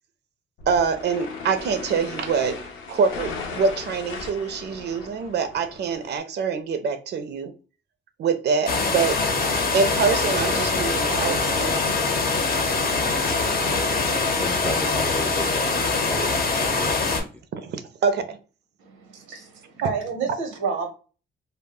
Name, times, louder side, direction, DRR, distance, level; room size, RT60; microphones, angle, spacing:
sound 1, 0.6-6.2, left 4 dB, 85° left, 0.6 m, -37 dB
voice 1, 0.7-2.6 2.9-7.5 8.2-9.2 9.7-11.7 17.5-18.4, right 5 dB, 60° right, 0.5 m, -25 dB
sound 2, 8.7-17.2, left 3 dB, 50° left, 0.7 m, -23 dB
voice 2, 14.4-17.0, left 1 dB, 5° left, 0.4 m, -34 dB
voice 3, 18.8-20.9, right 5 dB, 90° right, 0.8 m, -29 dB
2.1 x 2.0 x 3.4 m
cardioid pair, 90°, 20 cm